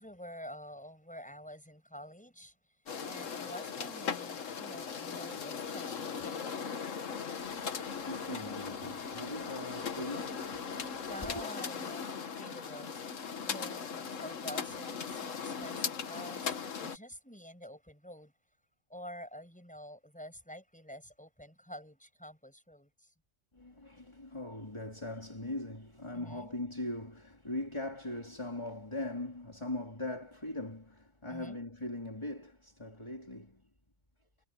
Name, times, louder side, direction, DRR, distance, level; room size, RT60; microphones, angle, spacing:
voice 1, 0.0-2.5 3.0-6.9 11.1-13.0 13.4-18.3 18.9-23.1 26.1-26.5 31.3-31.6, equal, 5° left, 6.6 m, -48 dB
sound 1, 2.9-17.0, left 6 dB, 85° left, 1.7 m, -38 dB
voice 2, 7.5-11.4 23.5-33.6, left 1 dB, 20° left, 3.5 m, -41 dB
Wind instrument woodwind instrument, 7.9-13.1, right 1 dB, 55° left, 4.3 m, -61 dB
omnidirectional pair, 1.3 m